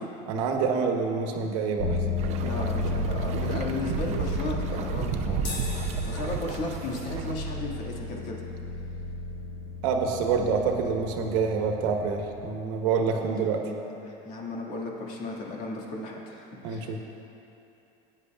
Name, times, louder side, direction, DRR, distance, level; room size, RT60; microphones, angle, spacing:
voice 1, 0.3-2.0 9.8-13.7 16.6-17.0, right 5 dB, 75° right, 3 dB, 1.2 m, -27 dB
sound 1, 1.8-12.5, left 3 dB, 65° left, 0.9 m, -33 dB
sound 2, 2.2-7.3, right 7 dB, 40° right, 0.6 m, -33 dB
voice 2, 2.4-5.5 6.1-8.4 13.1-17.0, left 2 dB, 50° left, -2 dB, 2.0 m, -35 dB
sound 3, 5.4-12.0, left 3 dB, 80° left, 2.6 m, -46 dB
19.5 x 9.8 x 2.4 m, 2.9 s
cardioid pair, 160°, 16 cm